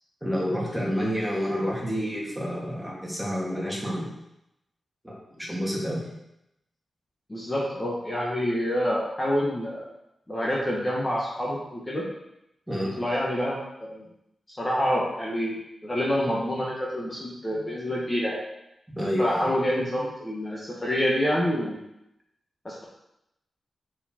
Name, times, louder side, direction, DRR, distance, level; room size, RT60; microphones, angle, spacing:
voice 1, 0.2-4.1 5.0-6.0 12.7-12.9 19.0-19.5, equal, 5° right, -5 dB, 2.1 m, -29 dB
voice 2, 7.3-9.8 10.3-12.1 13.0-14.0 14.5-18.4 19.2-21.8 22.6-22.8, equal, 20° left, -5 dB, 1.3 m, -27 dB
6.8 x 4.5 x 4.4 m, 0.85 s
wide cardioid pair, 120°, 0 cm